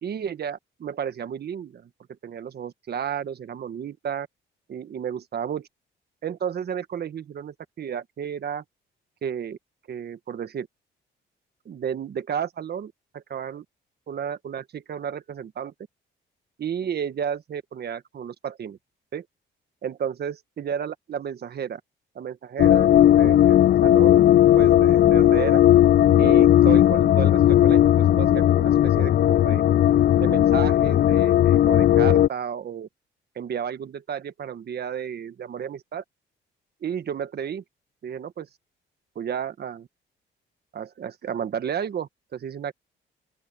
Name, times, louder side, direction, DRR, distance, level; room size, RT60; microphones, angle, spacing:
voice 1, 0.0-1.9 2.2-4.3 4.7-5.7 6.2-8.6 9.2-9.6 9.9-10.7 11.6-13.6 14.1-15.7 16.6-18.8 19.1-19.2 19.8-21.8 22.1-25.6 26.2-29.7 30.2-32.9 33.3-36.0 36.8-37.6 38.0-38.5 39.1-39.9 40.7-42.7, right 8 dB, 55° right, 1.5 m, -32 dB
sound 1, 22.6-32.3, left 12 dB, 50° left, 0.4 m, -17 dB
open air
cardioid pair, 90°, 20 cm